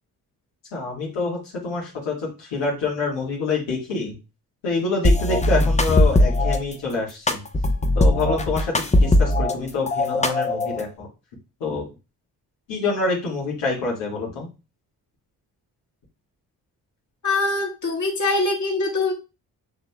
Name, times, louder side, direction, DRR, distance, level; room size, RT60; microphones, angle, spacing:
voice 1, 0.7-4.2 4.6-7.4 7.9-8.7 9.0-11.1 11.6-11.9 12.7-14.5, left 4 dB, 85° left, -4 dB, 1.6 m, -26 dB
sound 1, 5.0-6.6 7.3-9.5 9.9-10.8, left 1 dB, 15° left, 0.7 m, -19 dB
voice 2, 17.2-19.1, left 3 dB, 45° left, 0 dB, 1.8 m, -23 dB
6.3 x 2.9 x 2.2 m, 0.29 s
supercardioid pair, 50°, 42 cm